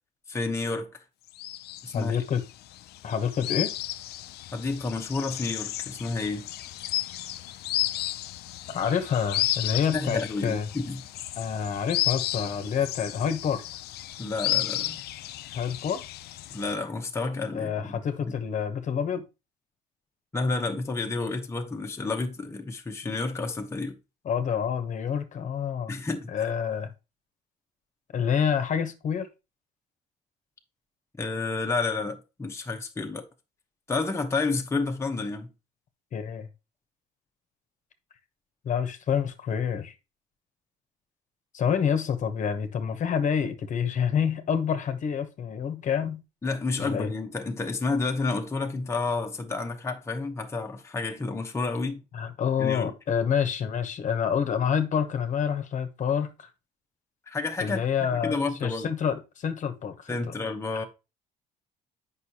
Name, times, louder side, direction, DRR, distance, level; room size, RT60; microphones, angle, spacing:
voice 1, 0.3-0.9 1.8-2.2 4.5-6.4 9.9-11.0 14.2-15.0 16.5-18.0 18.3-18.4 20.3-23.9 25.9-26.3 31.2-33.3 33.9-35.5 46.4-52.0 52.6-52.9 57.3-57.8 58.1-58.9 60.1-60.8, left 3 dB, 15° left, 0.9 m, -30 dB
sound 1, 1.4-16.8, left 14 dB, 75° left, 0.5 m, -33 dB
voice 2, 1.9-2.4 3.0-3.7 8.7-10.7 11.4-13.6 15.5-16.0 17.5-19.2 24.2-25.9 26.3-26.9 28.1-29.3 36.1-36.5 38.6-39.9 41.5-46.2 46.8-47.1 52.1-56.5 57.6-60.3, left 7 dB, 45° left, 1.0 m, -28 dB
8.1 x 5.5 x 2.8 m
cardioid pair, 110°, 17 cm